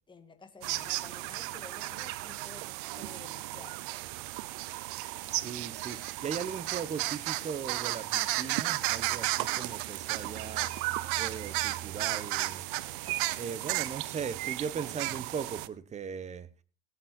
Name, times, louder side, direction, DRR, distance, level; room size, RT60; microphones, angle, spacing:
voice 1, 0.1-3.9, left 4 dB, 15° left, 1.9 m, -52 dB
sound 1, 0.6-15.7, right 19 dB, 60° right, 0.8 m, -34 dB
sound 2, 4.5-5.0 5.3-5.4 5.8-11.8 12.2-14.2, left 12 dB, 50° left, 2.3 m, -58 dB
voice 2, 5.2-10.7 11.2-12.7 13.4-16.5, right 6 dB, 25° right, 1.0 m, -38 dB
17.0 x 8.8 x 4.4 m
hypercardioid pair, 100°, 29 cm